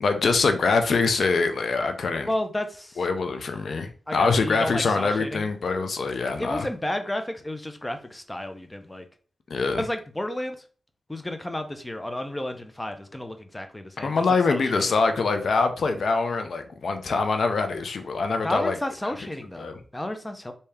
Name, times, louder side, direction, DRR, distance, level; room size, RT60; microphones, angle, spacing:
voice 1, 0.0-2.3 3.0-6.7 9.5-9.8 14.0-18.8 19.6-19.7, left 4 dB, 70° left, 0.4 m, -24 dB
voice 2, 2.3-3.0 4.1-5.5 6.4-9.0 9.8-10.6 11.1-14.1 14.5-14.8 18.4-20.5, left 1 dB, 15° left, 0.6 m, -32 dB
3.3 x 2.7 x 3.3 m
cardioid pair, 70°, 0 cm